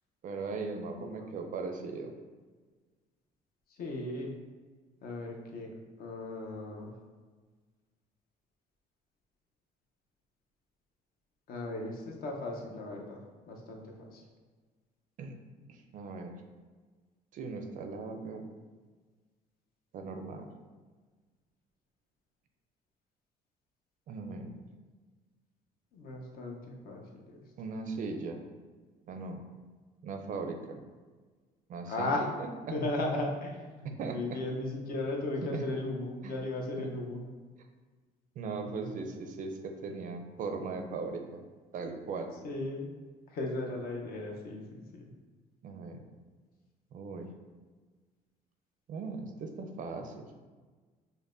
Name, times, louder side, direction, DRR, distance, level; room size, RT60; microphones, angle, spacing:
voice 1, 0.2-2.1 15.2-15.4 15.7-16.4 17.3-18.5 19.9-20.5 24.1-24.6 27.6-28.4 29.1-29.4 30.0-30.8 31.7-32.1 32.4-32.8 33.8-34.4 35.4-35.6 36.2-36.3 38.4-41.4 41.7-42.3 45.6-46.0 46.9-47.3 48.9-50.3, right 4 dB, 50° right, 5 dB, 0.4 m, -38 dB
voice 2, 1.0-1.3 3.8-4.3 5.0-5.7 6.0-6.9 11.5-14.2 25.9-27.4 31.9-32.2 32.7-37.2 42.4-42.9 43.3-45.0, left 2 dB, 60° left, 0 dB, 0.7 m, -36 dB
5.3 x 2.2 x 2.5 m, 1.4 s
cardioid pair, 110°, 17 cm